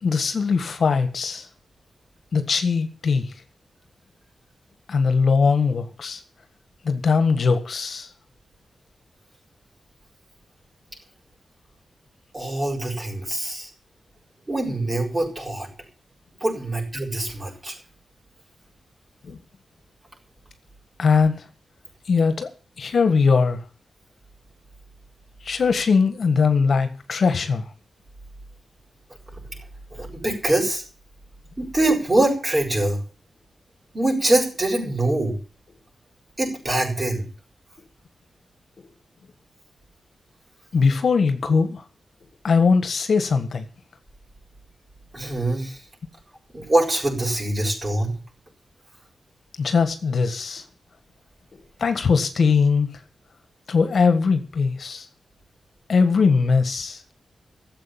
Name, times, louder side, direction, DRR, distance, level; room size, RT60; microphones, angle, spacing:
voice 1, 0.0-1.5 2.3-3.3 4.9-6.2 6.8-8.1 19.3-19.4 21.0-21.3 22.1-22.5 22.8-23.6 25.4-27.6 38.8-38.9 40.7-41.8 42.4-43.7 49.6-50.6 51.5-52.9 53.7-55.1 55.9-57.0, left 5 dB, 65° left, 1.6 m, -20 dB
voice 2, 12.3-13.7 14.5-15.7 16.4-17.7 29.9-30.8 31.6-33.0 33.9-35.4 36.4-37.2 45.1-45.8 46.5-48.1, right 1 dB, 30° right, 7.1 m, -23 dB
13.5 x 7.9 x 9.0 m
wide cardioid pair, 95°, 0 cm